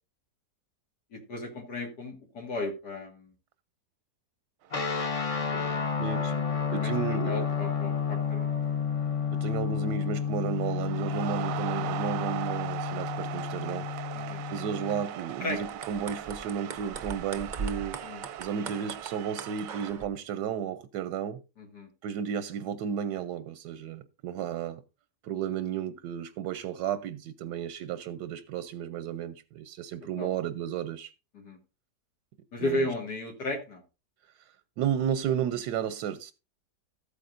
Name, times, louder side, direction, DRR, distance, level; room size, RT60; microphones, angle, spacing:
voice 1, 1.1-3.3 5.5-6.0 6.7-6.9 7.2-8.5 14.2-14.4 15.4-15.6 18.0-18.2 21.6-21.9 30.2-30.3 31.3-31.6 32.5-33.8, left 2 dB, 80° left, 2.5 m, -34 dB
sound 1, 4.6-5.1 5.4-5.9 6.8-7.0 7.4-9.7 10.0-19.9, right 10 dB, 65° right, 0.9 m, -40 dB
sound 2, 4.7-15.0, left 7 dB, 35° left, 0.6 m, -31 dB
voice 2, 6.0-6.4 6.7-7.4 9.3-18.0 18.4-21.4 22.0-24.8 25.2-31.1 32.6-32.9 34.2-36.3, right 8 dB, 90° right, 1.3 m, -33 dB
sound 3, 15.7-20.1, right 6 dB, 50° right, 0.5 m, -40 dB
14.0 x 8.5 x 2.6 m
omnidirectional pair, 1.8 m